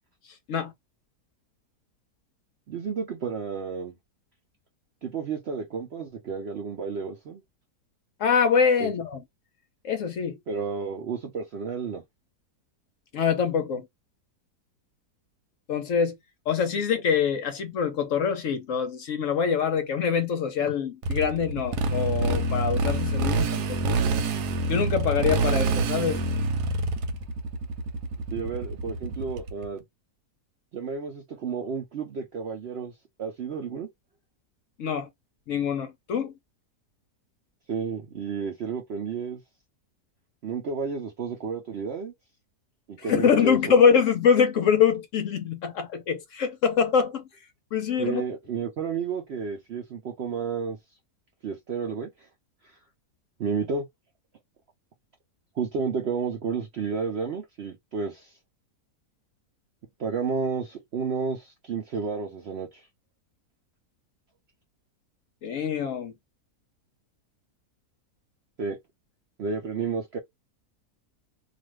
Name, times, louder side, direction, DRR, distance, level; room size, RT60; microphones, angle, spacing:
voice 1, 2.7-3.9 5.0-7.4 8.8-8.9 10.5-12.0 28.3-29.8 30.7-32.9 33.2-33.9 37.7-39.4 40.4-42.1 42.9-43.8 48.0-50.8 51.4-52.1 52.6-52.8 53.4-53.9 55.6-58.4 60.0-62.9 68.6-68.8 69.4-70.2, right 5 dB, 65° right, 0.6 m, -31 dB
voice 2, 8.2-9.2 9.8-10.4 13.1-13.9 15.7-16.2 16.5-24.0 24.7-26.2 34.8-35.1 35.5-36.3 43.0-47.2 47.7-48.2 65.4-66.1, left 6 dB, 65° left, 0.8 m, -24 dB
Motorcycle, 21.0-29.7, right 2 dB, 85° right, 1.2 m, -26 dB
2.5 x 2.5 x 3.1 m
omnidirectional pair, 1.7 m